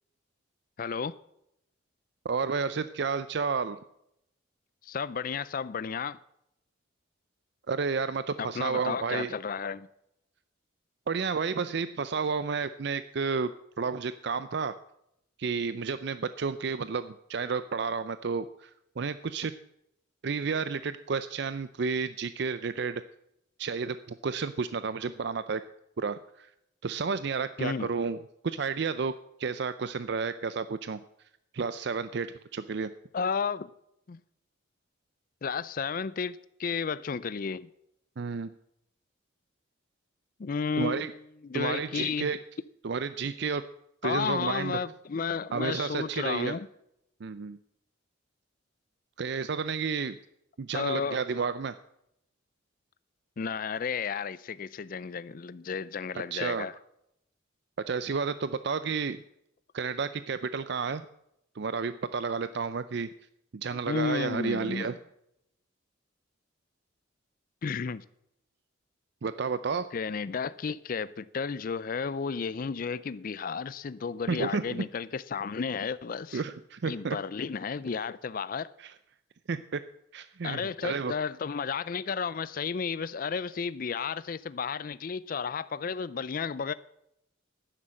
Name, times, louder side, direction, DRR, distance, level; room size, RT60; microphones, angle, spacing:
voice 1, 0.8-1.1 4.8-6.2 8.4-9.9 27.6-27.9 33.1-33.7 34.1-34.2 35.4-37.7 40.4-41.2 41.4-42.3 44.0-46.7 50.7-51.2 53.4-56.7 63.9-65.0 67.6-68.0 69.9-76.4 76.8-78.7 80.4-86.7, left 5 dB, 45° left, 0.4 m, -33 dB
voice 2, 2.2-3.8 7.7-9.3 11.1-14.8 15.4-18.7 19.0-19.6 20.2-23.0 23.6-25.6 26.0-26.5 26.8-31.0 31.5-32.9 38.2-38.5 40.8-41.1 41.5-42.4 42.8-43.7 44.0-44.8 45.5-46.6 47.2-47.6 49.2-50.2 50.6-51.8 56.3-56.7 57.9-59.2 59.7-61.1 61.6-63.1 63.5-65.0 69.2-69.9 74.3-74.8 76.3-77.2 78.8-78.9 79.5-79.8 80.1-81.1, right 5 dB, 60° right, 0.5 m, -31 dB
11.5 x 10.0 x 7.5 m
head